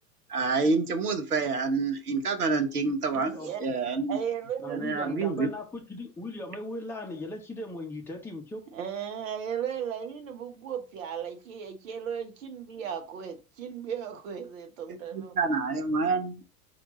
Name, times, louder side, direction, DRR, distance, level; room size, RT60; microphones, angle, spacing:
voice 1, 0.3-4.2 4.7-5.5 14.9-16.4, right 4 dB, 80° right, 0.8 m, -28 dB
voice 2, 3.1-3.5 4.6-8.7, left 2 dB, 5° left, 0.8 m, -38 dB
voice 3, 4.1-5.4 8.7-15.4, right 8 dB, 60° right, 1.1 m, -36 dB
4.4 x 2.6 x 4.0 m
figure-of-eight pair, 85°, 44 cm